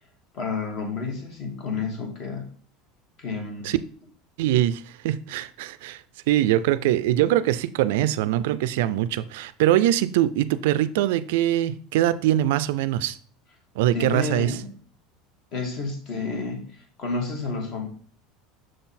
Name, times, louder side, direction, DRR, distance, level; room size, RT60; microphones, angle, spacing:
voice 1, 0.3-2.5 3.2-3.7 13.9-14.8 15.5-17.9, left 4 dB, 35° left, 1.4 m, -30 dB
voice 2, 4.4-6.0 6.3-13.2 13.8-14.6, right 13 dB, 75° right, 0.3 m, -23 dB
6.4 x 3.9 x 4.2 m
cardioid pair, 170°, 0 cm